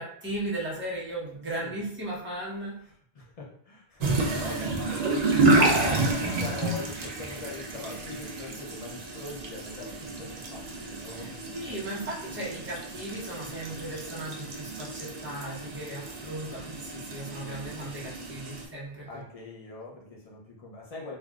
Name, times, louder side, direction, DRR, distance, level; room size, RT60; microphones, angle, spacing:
voice 1, 0.0-2.8 11.1-19.2, right 1 dB, 10° right, -7 dB, 0.9 m, -36 dB
voice 2, 3.1-5.0 5.5-11.5 19.1-21.2, left 3 dB, 45° left, -3 dB, 0.6 m, -42 dB
sound 1, 4.0-18.6, right 2 dB, 50° right, 0.6 m, -30 dB
3.4 x 2.4 x 2.3 m, 0.64 s
omnidirectional pair, 1.0 m